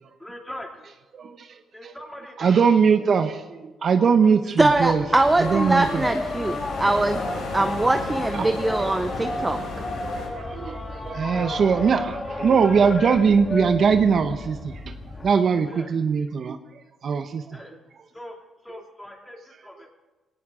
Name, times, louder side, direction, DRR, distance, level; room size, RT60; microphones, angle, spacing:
voice 1, 0.2-0.7 1.7-2.7 4.0-4.6 11.2-11.9 15.7-15.9 17.5-17.8 18.1-18.4 18.6-19.9, left 1 dB, 10° left, 1 dB, 2.8 m, -40 dB
voice 2, 1.1-1.5 1.8-1.9 2.4-5.0 5.4-6.1 6.5-6.6 8.3-8.6 10.2-14.9 15.2-16.6 17.0-17.6, right 6 dB, 55° right, 8 dB, 0.9 m, -21 dB
sound 1, 4.6-15.3, left 2 dB, 25° left, 2.2 m, -32 dB
voice 3, 4.6-7.3 7.5-9.6, right 2 dB, 15° right, 7 dB, 0.8 m, -22 dB
sound 2, 5.1-10.3, left 3 dB, 80° left, 5.8 m, -35 dB
20.0 x 18.0 x 3.8 m, 1.2 s
cardioid pair, 90°, 0 cm